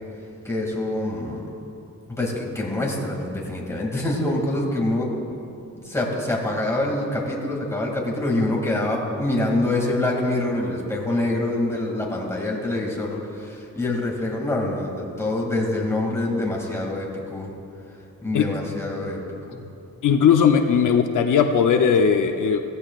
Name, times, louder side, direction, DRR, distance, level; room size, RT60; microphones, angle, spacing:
voice 1, 0.4-1.5 2.2-5.3 5.7-17.5 18.2-19.2 19.5-19.6, left 2 dB, 10° left, -3 dB, 2.3 m, -25 dB
voice 2, 20.0-22.6, left 7 dB, 75° left, 5 dB, 0.7 m, -18 dB
17.0 x 15.5 x 2.4 m, 2.7 s
wide cardioid pair, 135°, 31 cm